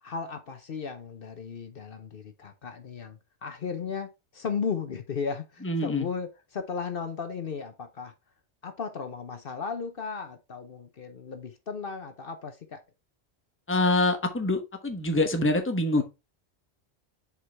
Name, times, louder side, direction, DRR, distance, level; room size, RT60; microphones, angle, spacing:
voice 1, 0.0-8.1 8.6-12.8, left 5 dB, 55° left, 1.0 m, -35 dB
voice 2, 5.6-6.1 13.7-16.0, left 2 dB, 10° left, 0.9 m, -25 dB
7.0 x 4.8 x 3.4 m
omnidirectional pair, 1.1 m